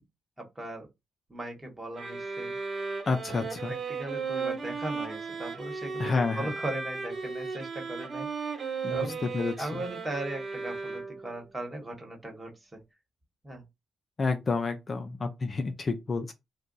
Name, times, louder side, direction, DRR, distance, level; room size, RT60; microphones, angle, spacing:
voice 1, 0.4-0.9 1.3-2.6 3.3-9.2 9.6-12.8 13.4-13.6, right 1 dB, 15° right, 1.4 m, -38 dB
sound 1, 2.0-11.4, right 5 dB, 45° right, 1.0 m, -36 dB
voice 2, 3.1-3.7 6.0-6.5 8.8-9.1 9.3-9.7 14.2-16.3, left 4 dB, 40° left, 0.5 m, -29 dB
2.5 x 2.3 x 4.0 m
cardioid pair, 65°, 0 cm